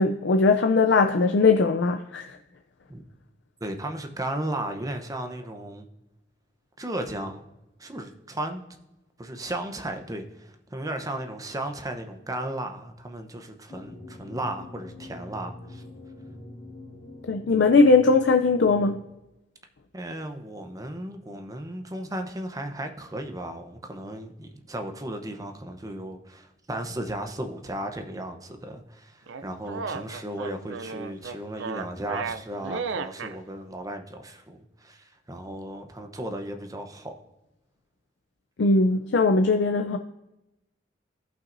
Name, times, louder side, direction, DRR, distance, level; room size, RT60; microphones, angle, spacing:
voice 1, 0.0-2.4 17.3-19.0 38.6-40.0, left 3 dB, 65° left, 0.5 m, -20 dB
voice 2, 3.6-5.9 6.8-7.4 7.8-8.6 9.2-15.8 19.9-37.1, right 1 dB, 20° right, 0.9 m, -35 dB
sound 1, 13.7-19.0, left 2 dB, 40° left, 2.1 m, -44 dB
sound 2, 29.3-33.4, right 5 dB, 85° right, 0.5 m, -34 dB
16.5 x 5.7 x 2.6 m
head